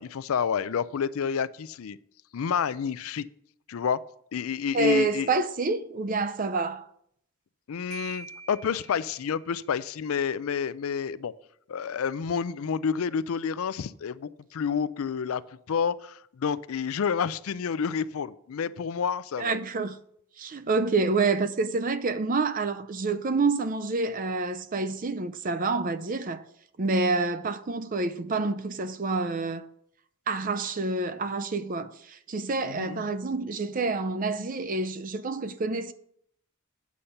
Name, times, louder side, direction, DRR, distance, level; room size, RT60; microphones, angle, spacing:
voice 1, 0.0-2.0 2.3-3.3 3.7-4.0 4.3-5.3 7.7-11.3 11.7-15.4 15.7-19.6 32.6-33.1, left 7 dB, 75° left, 0.4 m, -29 dB
voice 2, 4.7-6.8 19.4-20.0 20.4-26.4 26.8-29.7 30.3-35.9, right 3 dB, 40° right, 0.5 m, -28 dB
Marimba xylophone, 7.9-9.6, right 3 dB, 80° right, 0.7 m, -44 dB
8.5 x 5.7 x 6.5 m
head